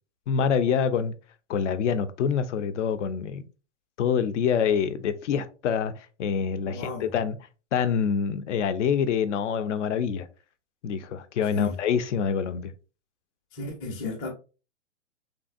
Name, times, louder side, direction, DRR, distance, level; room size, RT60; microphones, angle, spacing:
voice 1, 0.3-1.1 1.5-3.4 4.0-7.3 7.7-10.3 10.8-12.7, left 7 dB, 70° left, 0.5 m, -26 dB
voice 2, 6.6-7.2 11.5-11.8 13.5-14.3, left 3 dB, 15° left, 0.4 m, -34 dB
3.2 x 2.6 x 2.4 m
hypercardioid pair, 145°, 37 cm